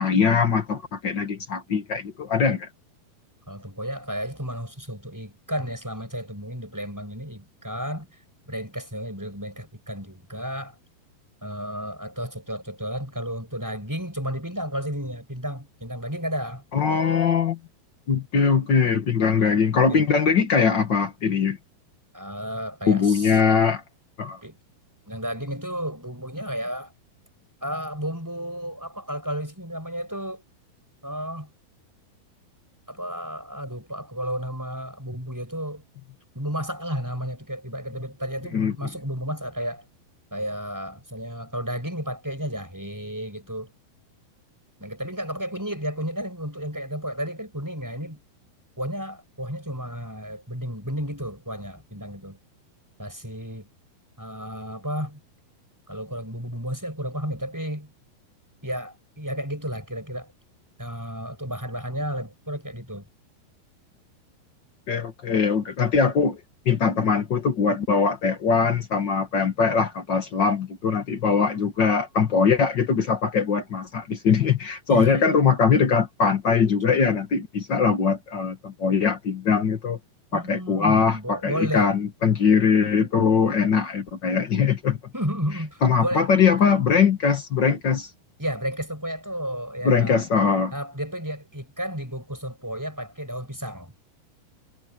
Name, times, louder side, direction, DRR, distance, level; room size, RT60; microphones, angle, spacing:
voice 1, 0.0-2.7 16.7-17.6 18.1-21.6 22.9-23.8 24.2-24.4 38.5-38.7 64.9-66.4 66.6-80.0 80.3-85.0 85.8-88.1 89.8-90.7, left 6 dB, 85° left, 1.0 m, -21 dB
voice 2, 3.5-8.2 8.5-10.8 11.4-16.6 19.4-19.5 19.9-20.1 22.1-23.4 24.4-24.6 25.1-26.9 27.6-30.4 31.0-31.5 32.9-35.8 36.3-39.8 40.3-43.7 44.8-48.2 48.8-52.4 53.0-53.7 54.2-55.2 55.9-57.9 58.6-60.3 60.8-63.1 74.9-75.2 80.3-82.0 85.1-86.3 88.4-90.2 90.7-93.9, equal, 5° right, 6.5 m, -32 dB
omnidirectional pair, 4.7 m